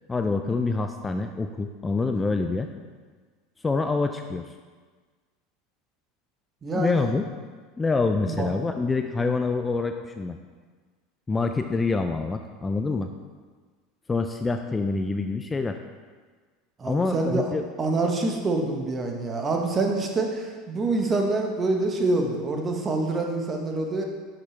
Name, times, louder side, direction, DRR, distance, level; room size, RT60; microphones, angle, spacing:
voice 1, 0.1-2.7 3.6-4.5 6.7-7.2 7.8-10.4 11.3-13.1 14.1-15.8 16.9-17.6, left 3 dB, 20° left, 6 dB, 0.4 m, -26 dB
voice 2, 6.6-7.1 8.3-8.5 16.8-17.5 17.8-24.0, right 2 dB, 30° right, 2 dB, 1.1 m, -26 dB
6.5 x 6.0 x 3.3 m, 1.5 s
hypercardioid pair, 90°, 0 cm